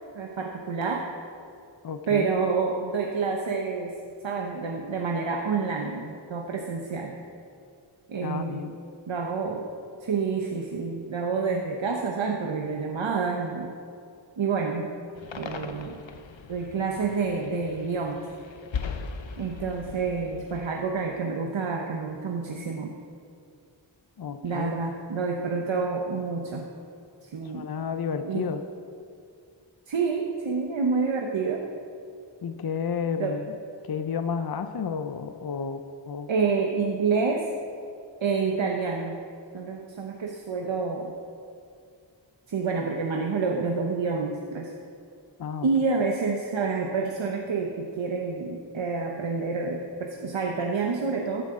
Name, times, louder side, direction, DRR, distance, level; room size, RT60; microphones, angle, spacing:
voice 1, 0.1-1.1 2.1-4.0 4.2-7.2 8.1-8.8 9.1-9.7 10.0-13.7 14.4-15.0 15.4-16.0 16.5-18.3 19.4-22.9 24.4-26.7 27.2-27.6 28.2-28.5 29.9-31.7 33.2-33.4 36.3-37.5 38.2-39.2 39.5-41.1 42.5-44.7 45.6-51.4, right 4 dB, 90° right, 1 dB, 0.9 m, -28 dB
voice 2, 1.8-2.3 8.2-8.8 24.2-24.7 27.4-28.6 32.4-33.5 33.8-36.3 45.4-45.7, left 6 dB, 55° left, 8 dB, 0.6 m, -31 dB
sound 1, 15.1-20.7, left 5 dB, 80° left, 0.9 m, -39 dB
14.5 x 9.6 x 3.7 m, 2.4 s
wide cardioid pair, 55°, 45 cm